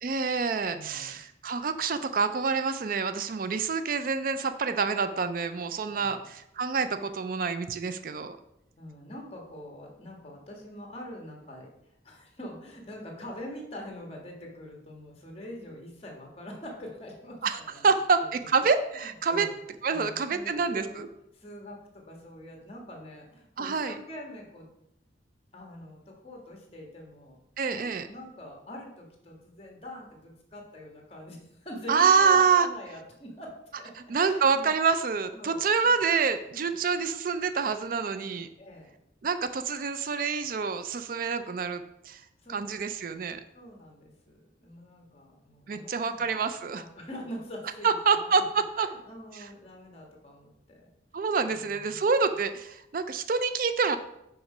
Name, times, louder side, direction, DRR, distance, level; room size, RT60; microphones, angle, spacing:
voice 1, 0.0-8.4 17.4-19.5 19.8-21.1 23.6-23.9 27.6-28.0 31.9-32.7 34.1-38.5 39.2-42.2 42.5-43.4 45.7-46.8 47.8-48.9 49.3-49.5 51.1-54.0, right 5 dB, 50° right, 10 dB, 0.4 m, -27 dB
voice 2, 0.7-1.1 5.8-6.3 8.8-17.9 18.2-18.4 19.0-19.6 19.9-21.1 21.3-24.7 25.5-27.4 27.7-34.7 35.3-35.7 36.7-36.8 38.6-38.9 42.4-42.7 43.5-46.4 46.7-48.4 48.8-50.9 51.4-52.0, left 1 dB, 35° left, 1 dB, 1.5 m, -44 dB
5.8 x 4.9 x 5.4 m, 0.83 s
head